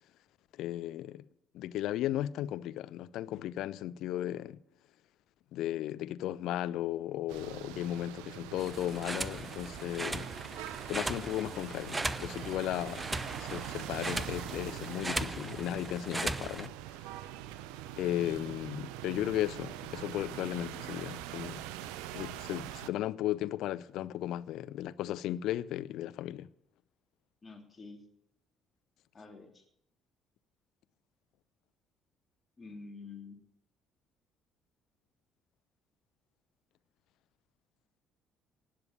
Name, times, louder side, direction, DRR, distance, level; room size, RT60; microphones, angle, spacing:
voice 1, 0.6-1.2 1.5-4.6 5.5-10.3 10.9-13.0 13.4-16.7 18.0-21.6 22.1-26.5, left 13 dB, 60° left, 0.5 m, -35 dB
sound 1, 7.3-22.9, right 13 dB, 65° right, 0.6 m, -43 dB
sound 2, 8.6-16.7, right 2 dB, 20° right, 0.8 m, -38 dB
voice 2, 27.4-28.0 29.1-29.6 32.6-33.4, left 4 dB, 30° left, 3.3 m, -48 dB
18.5 x 6.9 x 7.1 m
figure-of-eight pair, 50°, 0 cm